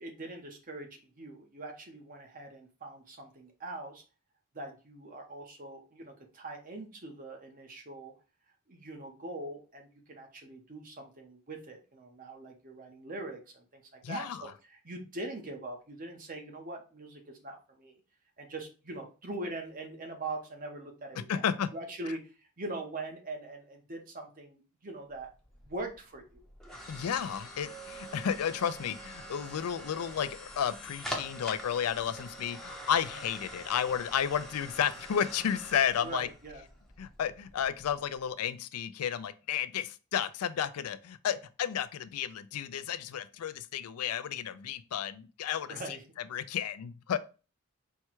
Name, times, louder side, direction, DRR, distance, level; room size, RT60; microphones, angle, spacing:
voice 1, 0.0-4.0 4.5-8.1 8.7-18.0 18.4-21.5 21.7-25.3 25.6-26.4 36.0-36.6 45.7-46.0, right 2 dB, 40° right, 0.9 m, -42 dB
voice 2, 14.0-14.5 21.3-21.7 26.9-36.3 37.0-45.8 46.3-47.2, left 8 dB, 85° left, 0.4 m, -32 dB
sound 1, 25.1-38.2, equal, ahead, 0.8 m, -45 dB
4.5 x 2.3 x 4.4 m
head